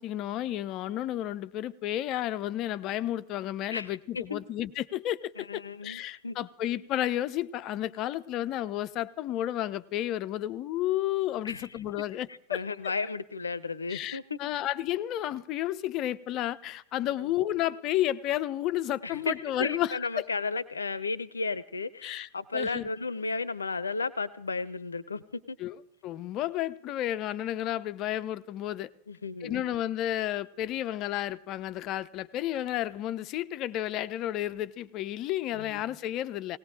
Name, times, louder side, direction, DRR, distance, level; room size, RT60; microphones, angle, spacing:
voice 1, 0.0-12.6 13.9-20.3 22.0-22.9 25.6-25.8 26.0-28.9 29.4-36.6, left 13 dB, 35° left, 0.6 m, -32 dB
voice 2, 3.7-4.4 5.4-6.4 11.4-11.7 12.5-14.4 17.2-17.3 19.0-19.3 19.6-25.6 29.1-29.6 35.5-35.8, left 4 dB, 75° left, 0.7 m, -34 dB
18.5 x 18.5 x 3.7 m
figure-of-eight pair, 90°, 0 cm